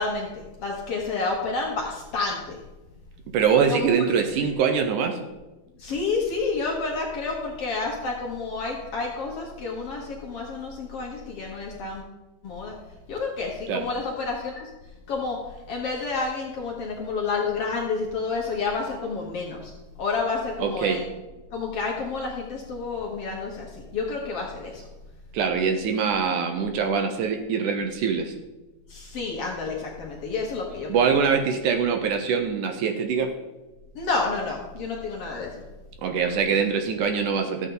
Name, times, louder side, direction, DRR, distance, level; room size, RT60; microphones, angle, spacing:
voice 1, 0.0-2.6 3.7-4.2 5.8-12.0 12.4-12.7 13.1-14.7 15.1-15.4 15.7-19.7 20.0-21.1 21.5-24.9 28.9-30.9 34.0-35.5, left 4 dB, 55° left, -2 dB, 1.8 m, -29 dB
voice 2, 3.3-5.2 13.7-13.9 20.6-21.1 25.3-28.3 30.9-33.3 36.0-37.7, right 6 dB, 75° right, 5 dB, 2.1 m, -23 dB
13.0 x 8.2 x 3.8 m, 1.1 s
omnidirectional pair, 3.9 m